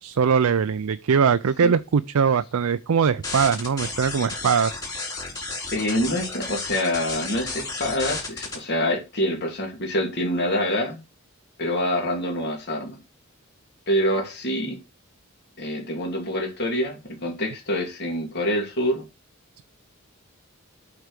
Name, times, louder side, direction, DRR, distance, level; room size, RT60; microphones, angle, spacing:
voice 1, 0.0-4.7, right 6 dB, 80° right, 0.5 m, -21 dB
sound 1, 3.2-8.5, left 3 dB, 15° left, 4.4 m, -32 dB
voice 2, 5.7-11.0 11.6-13.0 13.9-14.8 15.6-19.0, equal, 50° left, 2.6 m, -26 dB
8.4 x 4.6 x 6.6 m
head